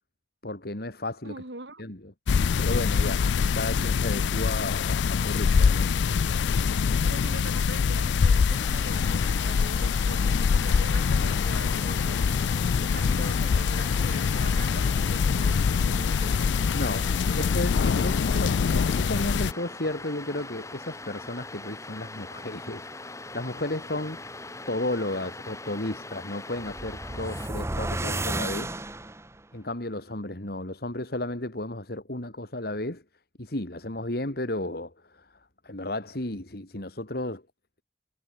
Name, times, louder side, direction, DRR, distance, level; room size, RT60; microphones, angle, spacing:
voice 1, 0.4-1.3 1.8-2.1 2.6-3.3 3.5-5.9 16.7-17.1 17.4-18.5 19.0-24.2 24.7-28.7 29.5-33.0 33.4-35.2 35.6-37.4, left 1 dB, 60° left, 2.8 m, -33 dB
voice 2, 1.2-1.8 7.1-12.2 12.8-17.5 17.8-18.8, right 2 dB, 80° right, 4.8 m, -43 dB
sound 1, 2.3-19.5, left 6 dB, 85° left, 0.4 m, -24 dB
sound 2, 8.5-27.5, left 2 dB, 15° left, 5.6 m, -42 dB
sound 3, 26.6-29.4, right 2 dB, 15° right, 1.0 m, -32 dB
head